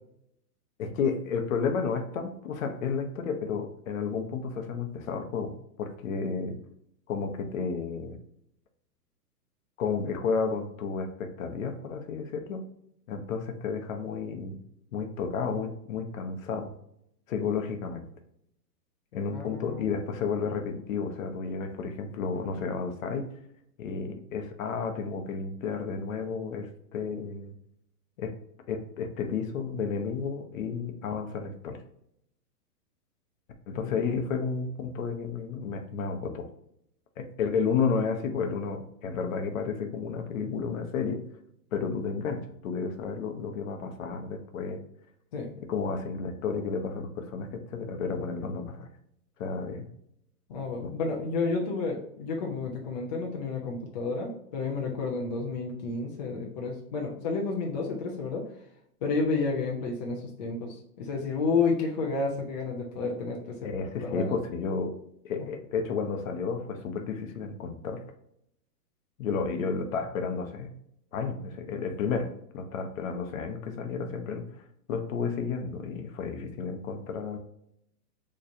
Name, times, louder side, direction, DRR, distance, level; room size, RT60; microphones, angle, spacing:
voice 1, 0.8-5.5 5.8-6.6 7.1-8.2 9.8-12.7 13.1-14.6 14.9-16.7 17.3-18.0 19.1-23.3 23.8-27.5 28.2-28.4 28.7-31.8 33.7-36.5 37.2-41.2 41.7-44.8 45.7-48.9 49.4-49.9 50.8-50.9 63.6-65.0 65.2-68.0 69.2-70.7 71.1-74.4 74.9-77.4, left 5 dB, 55° left, 6 dB, 0.7 m, -32 dB
voice 2, 19.3-20.0 33.7-33.9 45.3-45.5 50.5-58.4 59.0-63.7 64.0-64.3, left 4 dB, 30° left, -1 dB, 0.4 m, -31 dB
4.1 x 3.1 x 2.6 m, 0.75 s
hypercardioid pair, 140°, 48 cm